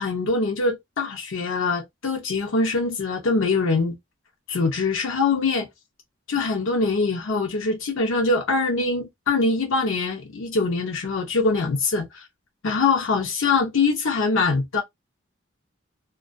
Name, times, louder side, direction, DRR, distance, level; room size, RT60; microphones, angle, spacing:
voice 1, 0.0-3.9 4.5-5.7 6.3-12.2 12.6-14.8, left 3 dB, 80° left, 0.6 m, -23 dB
2.3 x 2.2 x 2.4 m
head